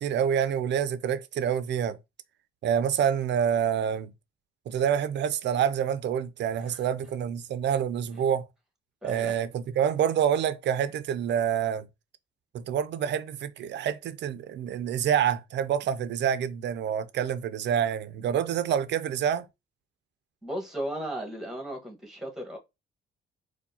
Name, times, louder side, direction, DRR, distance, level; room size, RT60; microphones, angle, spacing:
voice 1, 0.0-2.0 2.6-4.1 4.7-8.4 9.0-11.9 12.5-19.5, right 8 dB, 65° right, 0.4 m, -27 dB
voice 2, 9.0-9.4 20.4-22.6, right 1 dB, ahead, 1.3 m, -36 dB
4.4 x 2.2 x 2.7 m
cardioid pair, 90°, 20 cm